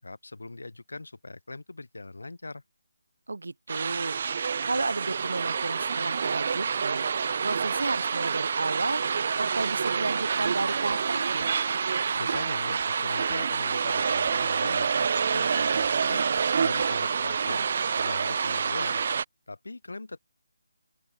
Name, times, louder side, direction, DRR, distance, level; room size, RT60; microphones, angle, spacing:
voice 1, 0.0-2.6 11.8-16.2 16.6-17.7 18.0-19.0 19.5-20.2, left 2 dB, 90° left, 2.2 m, -40 dB
voice 2, 3.3-4.2 4.6-7.1 7.4-11.5, right 3 dB, 85° right, 1.5 m, -32 dB
sound 1, 3.7-19.2, right 6 dB, 40° right, 0.5 m, -27 dB
Plucked string instrument, 10.2-17.5 18.6-18.9, right 17 dB, 20° right, 5.1 m, -48 dB
open air
figure-of-eight pair, 170°, 0 cm